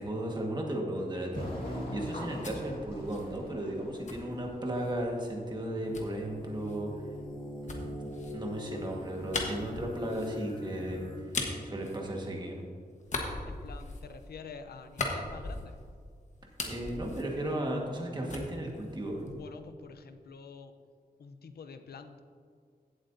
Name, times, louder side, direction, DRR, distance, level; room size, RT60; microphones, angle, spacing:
voice 1, 0.0-6.9 7.6-12.6 16.6-19.3, right 1 dB, 30° right, 0 dB, 1.5 m, -35 dB
sound 1, 1.3-7.0, equal, 65° left, 2.3 m, -43 dB
sound 2, 2.0-5.0 5.9-12.6 13.0-16.0 16.3-18.0 18.3-19.6, left 2 dB, 50° left, 1.2 m, -40 dB
sound 3, 5.8-11.2, left 2 dB, 35° left, 2.4 m, -42 dB
voice 2, 13.5-15.7 19.3-20.7 21.2-22.2, left 5 dB, 85° left, 8 dB, 0.7 m, -47 dB
16.0 x 7.7 x 2.7 m, 2.1 s
wide cardioid pair, 155°, 16 cm